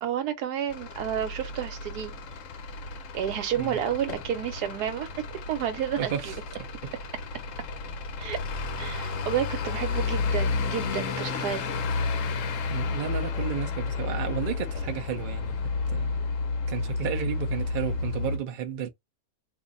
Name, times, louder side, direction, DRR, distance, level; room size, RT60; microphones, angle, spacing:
voice 1, 0.0-2.1 3.1-5.1 5.5-6.3 8.2-8.4 8.8-11.7, right 9 dB, 85° right, 1.3 m, -30 dB
Truck / Idling, 0.7-18.4, left 4 dB, 65° left, 0.9 m, -31 dB
voice 2, 6.0-6.4 12.7-15.6 15.9-16.2 16.7-18.9, right 9 dB, 55° right, 0.5 m, -32 dB
2.6 x 2.5 x 3.8 m
omnidirectional pair, 1.6 m